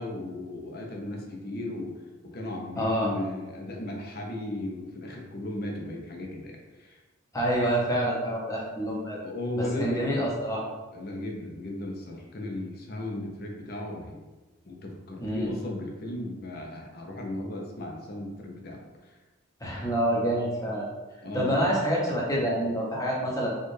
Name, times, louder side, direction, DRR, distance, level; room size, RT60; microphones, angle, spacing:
voice 1, 0.0-7.0 9.2-10.1 10.9-14.2 14.6-19.2 21.2-21.7, left 1 dB, 45° left, 0 dB, 0.6 m, -36 dB
voice 2, 2.8-3.1 7.3-9.2 9.6-10.7 15.2-15.5 19.6-20.9 21.3-23.6, equal, 15° left, -4 dB, 0.7 m, -27 dB
4.3 x 2.4 x 3.2 m, 1.2 s
head